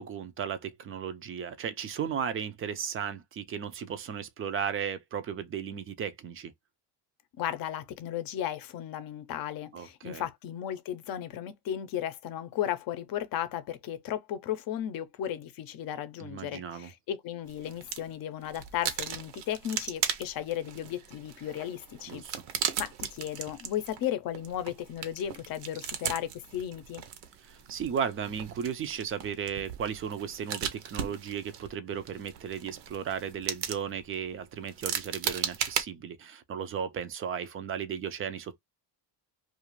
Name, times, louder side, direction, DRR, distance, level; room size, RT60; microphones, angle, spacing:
voice 1, 0.0-6.5 9.7-10.2 16.2-16.9 22.1-22.4 27.4-38.6, right 7 dB, 30° right, 0.4 m, -35 dB
voice 2, 7.4-22.2 22.8-27.0, left 11 dB, 50° left, 0.6 m, -35 dB
sound 1, 17.5-18.1 18.4-35.8, right 9 dB, 65° right, 0.8 m, -37 dB
2.4 x 2.4 x 2.9 m
cardioid pair, 120°, 45 cm